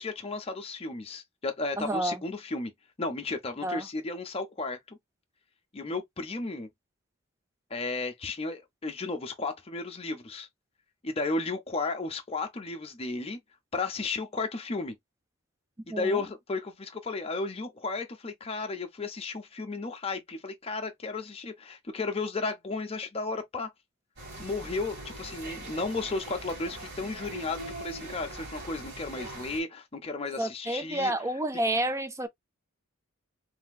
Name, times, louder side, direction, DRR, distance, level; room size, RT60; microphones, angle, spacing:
voice 1, 0.0-2.7 3.0-5.0 5.7-6.7 7.7-10.5 11.0-13.4 13.7-15.0 15.9-23.7 24.4-31.1, left 3 dB, 25° left, 0.6 m, -34 dB
voice 2, 1.8-2.2 3.6-3.8 15.9-16.2 30.4-32.3, right 1 dB, 15° right, 0.3 m, -29 dB
sound 1, 24.2-29.6, right 2 dB, 50° right, 2.1 m, -41 dB
3.3 x 2.8 x 2.3 m
head